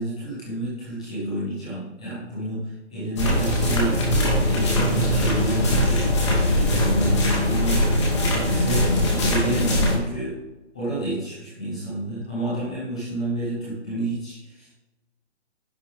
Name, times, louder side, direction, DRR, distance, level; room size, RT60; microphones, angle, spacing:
voice 1, 0.0-7.8 8.2-10.3 10.7-14.7, right 1 dB, 5° left, -9 dB, 0.8 m, -30 dB
sound 1, 3.2-9.9, left 1 dB, 25° left, 2.3 m, -21 dB
11.0 x 7.5 x 3.5 m, 1.1 s
hypercardioid pair, 175°, 36 cm